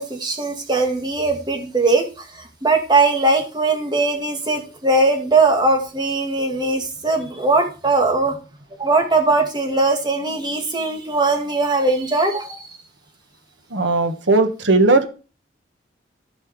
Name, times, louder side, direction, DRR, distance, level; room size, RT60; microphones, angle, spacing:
voice 1, 0.0-8.4 8.8-12.7, right 3 dB, 25° right, 4 dB, 2.1 m, -20 dB
voice 2, 13.7-15.1, right 2 dB, 90° right, 8 dB, 1.6 m, -17 dB
14.0 x 5.6 x 4.8 m, 0.34 s
head